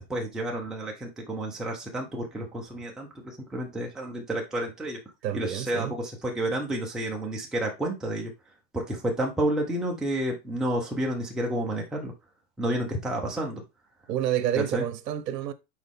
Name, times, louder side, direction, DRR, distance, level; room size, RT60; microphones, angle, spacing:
voice 1, 0.0-5.0 5.3-8.3 8.7-12.1 12.6-13.6 14.6-14.8, right 1 dB, ahead, 0.6 m, -30 dB
voice 2, 5.2-5.9 14.1-15.5, right 10 dB, 80° right, 1.0 m, -28 dB
6.3 x 4.3 x 3.6 m
hypercardioid pair, 145°, 49 cm